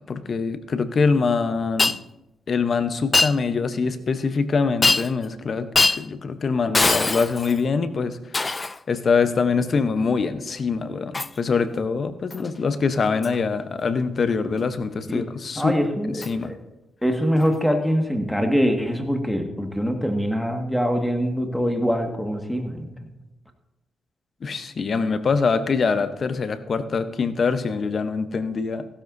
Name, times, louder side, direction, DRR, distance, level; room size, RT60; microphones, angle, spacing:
voice 1, 0.0-2.0 2.5-5.7 6.0-8.6 8.9-15.7 16.1-16.5 24.4-28.9, left 5 dB, 50° left, 11 dB, 0.9 m, -24 dB
Shatter, 1.8-2.0 3.1-3.4 4.8-5.2 5.7-6.0 6.7-7.6 8.3-8.8 11.1-11.4 12.3-12.5 13.2-13.4 16.2-16.3 17.4-17.5, left 3 dB, 25° left, 0.4 m, -21 dB
voice 2, 15.6-16.6 17.0-22.9, equal, 5° left, 4 dB, 1.8 m, -23 dB
15.5 x 12.5 x 2.7 m, 0.95 s
cardioid pair, 70°, 0 cm